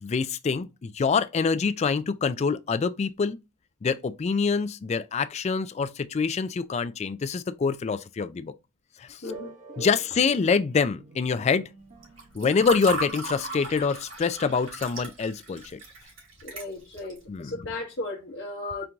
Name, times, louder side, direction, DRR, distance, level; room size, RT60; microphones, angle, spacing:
voice 1, 0.0-3.4 3.8-8.5 9.1-9.2 9.8-11.7 12.3-15.8 17.3-17.5 18.6-18.9, left 5 dB, 35° left, 0.3 m, -26 dB
voice 2, 9.2-9.5 16.4-18.9, left 2 dB, 60° left, 1.0 m, -36 dB
sound 1, 9.2-13.8, right 2 dB, 40° right, 0.8 m, -46 dB
Water / Fill (with liquid), 12.0-17.2, right 3 dB, 70° right, 2.6 m, -36 dB
4.4 x 2.6 x 3.4 m
head